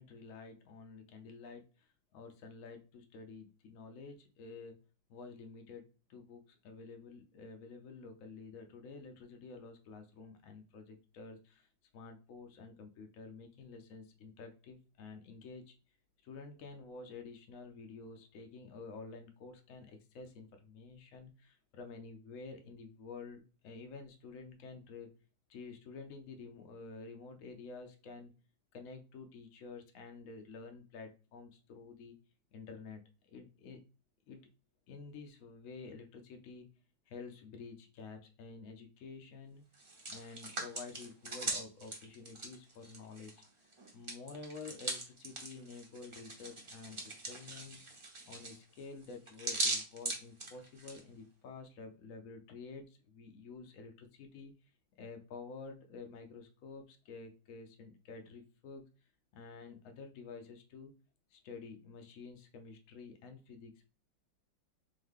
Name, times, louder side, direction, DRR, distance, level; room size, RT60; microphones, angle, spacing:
voice 1, 0.0-4.8 5.1-11.7 11.9-15.7 16.2-25.1 25.5-28.3 28.7-32.2 32.5-33.8 34.3-34.5 34.9-36.7 37.1-39.6 40.1-43.4 43.9-54.5 55.0-58.8 59.3-61.0 61.3-63.9, left 4 dB, 65° left, 5 dB, 0.8 m, -50 dB
Hands, 39.7-43.4 43.7-51.0, right 2 dB, 45° right, 0.4 m, -40 dB
3.6 x 3.1 x 3.6 m, 0.33 s
omnidirectional pair, 2.0 m